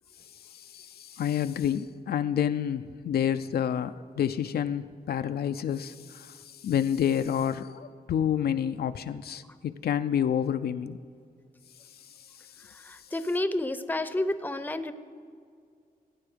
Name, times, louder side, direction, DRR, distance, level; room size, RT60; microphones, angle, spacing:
voice 1, 0.3-11.0 12.0-12.3 12.6-12.7, left 9 dB, 85° left, 10 dB, 0.4 m, -29 dB
voice 2, 12.6-14.9, left 1 dB, 10° left, 11 dB, 0.6 m, -30 dB
17.0 x 9.0 x 5.1 m, 2.2 s
wide cardioid pair, 115°, 16 cm